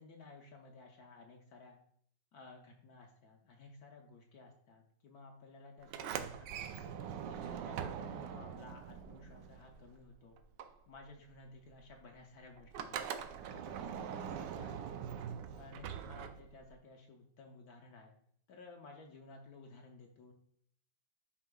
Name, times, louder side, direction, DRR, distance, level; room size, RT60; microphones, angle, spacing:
voice 1, 0.0-1.8 2.3-6.7 7.2-10.4 10.9-14.9 15.5-18.1 18.5-20.3, left 3 dB, 65° left, 1 dB, 1.2 m, -55 dB
Sliding door, 5.8-10.1 10.4-16.8, right 8 dB, 80° right, 1.2 m, -43 dB
9.6 x 5.5 x 2.3 m, 0.64 s
omnidirectional pair, 1.9 m